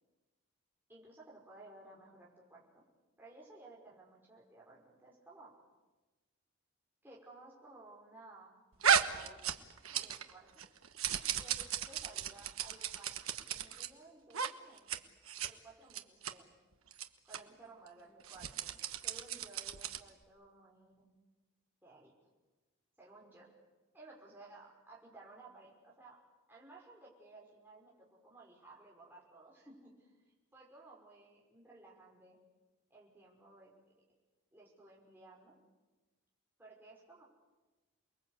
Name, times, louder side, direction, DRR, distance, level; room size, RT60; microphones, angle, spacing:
voice 1, 0.9-2.8 3.2-5.5 7.0-8.5 9.1-9.4 9.9-10.6 11.4-13.1 13.5-14.9 15.5-16.5 17.2-21.1 21.8-22.1 23.0-23.5 23.9-26.2 26.5-30.1 30.5-32.4 32.9-33.7 34.5-35.6 36.6-37.2, right 2 dB, 10° right, -4 dB, 5.7 m, -57 dB
sound 1, 8.8-10.3 10.6-13.9 14.3-14.5 14.8-15.0 15.3-15.5 15.9-16.3 16.9-17.1 17.3-17.4 18.2-20.1, right 8 dB, 90° right, 1.3 m, -34 dB
28.5 x 21.5 x 8.3 m, 1.2 s
head